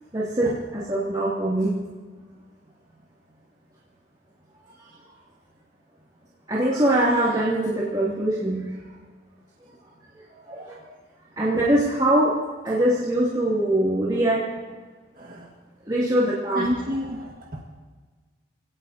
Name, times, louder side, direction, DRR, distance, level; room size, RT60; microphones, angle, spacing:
voice 1, 0.1-1.7 6.5-8.6 10.5-10.8 11.4-12.3 12.6-14.4 15.8-16.7, right 1 dB, 25° right, -9 dB, 2.6 m, -22 dB
voice 2, 15.2-15.5 16.5-17.6, equal, 45° right, -2 dB, 1.8 m, -30 dB
26.0 x 18.0 x 2.8 m, 1.4 s
head